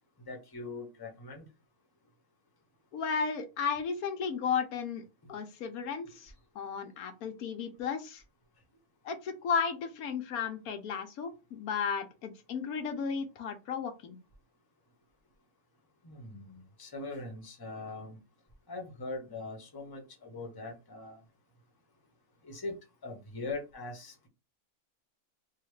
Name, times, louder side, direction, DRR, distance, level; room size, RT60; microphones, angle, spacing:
voice 1, 0.2-1.5 5.2-5.3 6.0-6.2 16.0-18.2 18.7-21.2 22.4-22.7 23.0-24.3, left 3 dB, 20° left, 0.8 m, -41 dB
voice 2, 2.9-5.0 5.3-8.2 9.0-14.2, left 6 dB, 85° left, 1.2 m, -34 dB
3.5 x 2.4 x 3.1 m
omnidirectional pair, 1.5 m